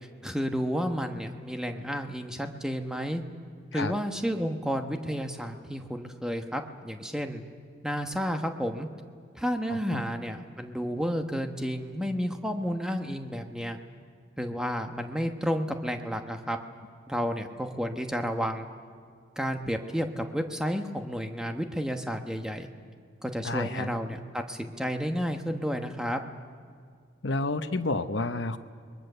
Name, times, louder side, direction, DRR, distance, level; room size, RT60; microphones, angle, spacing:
voice 1, 0.2-3.2 3.7-7.4 7.8-8.9 9.3-13.8 14.4-16.6 17.1-18.7 19.4-22.7 23.2-26.2, equal, 5° right, 5 dB, 1.1 m, -31 dB
voice 2, 9.7-10.0 23.4-23.9 27.2-28.6, left 2 dB, 65° left, 8 dB, 1.0 m, -30 dB
28.5 x 21.5 x 6.8 m, 2.1 s
head